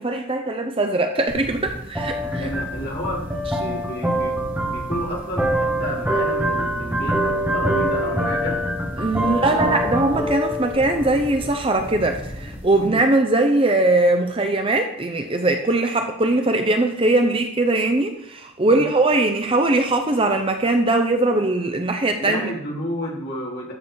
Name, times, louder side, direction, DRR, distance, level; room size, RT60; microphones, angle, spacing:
voice 1, 0.0-2.5 9.0-22.5, right 2 dB, 25° right, 5 dB, 0.7 m, -20 dB
sound 1, 1.3-12.9, right 1 dB, 10° right, 1.2 m, -25 dB
voice 2, 2.4-8.7 9.2-9.7 12.7-13.0 18.6-18.9 22.2-23.7, left 1 dB, 45° left, -3 dB, 2.9 m, -31 dB
12.5 x 6.7 x 4.5 m, 0.75 s
head